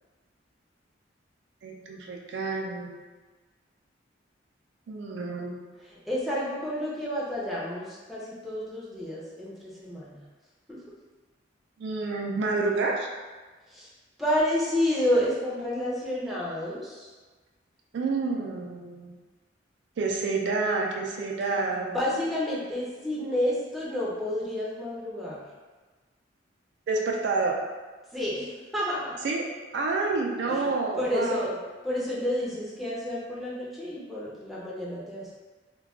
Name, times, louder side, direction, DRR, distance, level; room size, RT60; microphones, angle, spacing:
voice 1, 1.6-3.0 4.9-5.6 11.8-13.1 17.9-19.2 20.0-22.0 26.9-27.5 29.2-29.4 29.7-31.5, right 3 dB, 65° right, 0 dB, 0.3 m, -29 dB
voice 2, 5.8-10.3 10.7-10.8 13.7-13.9 14.2-17.1 21.7-25.5 28.1-29.2 30.5-31.5 31.8-35.3, left 1 dB, ahead, -7 dB, 0.5 m, -30 dB
2.3 x 2.2 x 3.5 m, 1.3 s
head